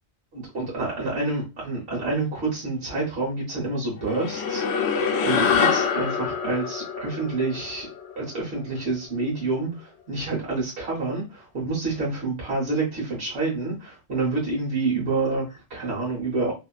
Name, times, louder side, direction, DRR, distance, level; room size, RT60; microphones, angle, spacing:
voice 1, 0.3-4.6 5.2-7.9 8.2-16.5, right 3 dB, 80° right, -4 dB, 1.4 m, -28 dB
sound 1, 4.1-8.8, left 6 dB, 80° left, 0.8 m, -25 dB
2.8 x 2.5 x 2.3 m, 0.26 s
omnidirectional pair, 1.1 m